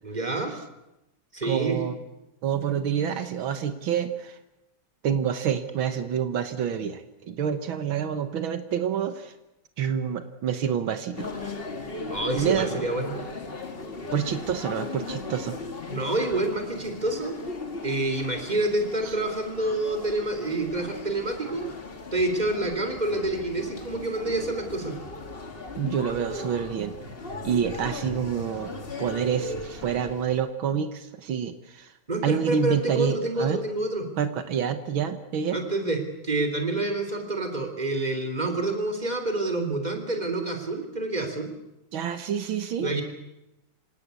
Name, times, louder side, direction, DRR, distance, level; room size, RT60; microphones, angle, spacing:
voice 1, 0.0-0.5 1.3-1.8 12.1-13.1 15.9-17.4 17.8-21.7 22.1-25.0 32.1-34.1 35.5-41.5 42.8-43.0, right 2 dB, 20° right, 5 dB, 3.4 m, -28 dB
voice 2, 1.4-2.0 2.4-4.4 5.0-9.3 9.8-11.3 12.3-12.9 14.1-15.6 19.0-19.2 25.8-27.0 27.4-28.7 29.0-31.9 32.2-33.6 34.2-35.6 41.9-42.9, right 8 dB, 80° right, 10 dB, 2.0 m, -27 dB
sound 1, 11.1-30.5, left 3 dB, 30° left, 1.9 m, -37 dB
26.0 x 18.0 x 8.3 m, 0.93 s
omnidirectional pair, 2.2 m